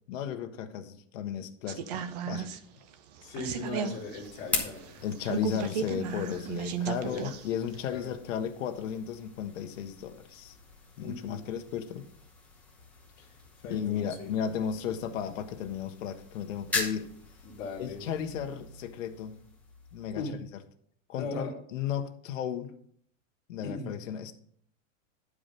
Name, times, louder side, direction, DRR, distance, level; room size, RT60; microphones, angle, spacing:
voice 1, 0.1-2.5 5.0-10.6 11.0-12.0 13.6-17.1 17.8-19.4 19.9-20.4 21.1-22.7 23.5-24.3, left 8 dB, 70° left, 1.2 m, -34 dB
sound 1, 1.7-7.5 7.7-7.8, right 7 dB, 35° right, 0.4 m, -35 dB
voice 2, 3.2-5.0 7.0-7.2 7.9-8.0 11.0-11.5 13.2-13.3 13.6-14.3 17.4-18.0 20.1-20.4 21.2-21.5 23.6-23.9, left 3 dB, 30° left, 1.8 m, -39 dB
sound 2, 3.7-20.6, left 3 dB, 5° left, 0.9 m, -42 dB
10.5 x 4.9 x 5.3 m
supercardioid pair, 170°, 40 cm